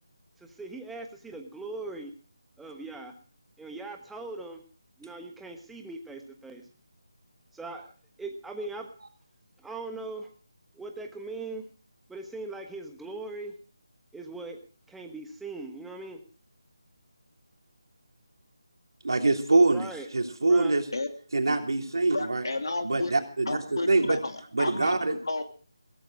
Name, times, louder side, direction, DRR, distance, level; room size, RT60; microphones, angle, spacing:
voice 1, 0.6-2.1 2.6-3.1 3.6-4.6 5.0-6.6 7.5-7.9 8.2-8.9 9.6-10.3 10.8-11.6 12.1-13.5 14.1-14.6 14.9-16.2 19.7-20.1 20.5-20.7, right 3 dB, 5° right, 3 dB, 1.2 m, -39 dB
voice 2, 19.0-20.9 21.3-22.4 22.8-24.2 24.5-25.2, right 2 dB, 70° right, 4 dB, 3.2 m, -24 dB
voice 3, 22.1-23.1 23.5-25.4, left 2 dB, 70° left, 6 dB, 2.7 m, -32 dB
16.5 x 14.5 x 4.8 m, 0.41 s
figure-of-eight pair, 165°, 2 cm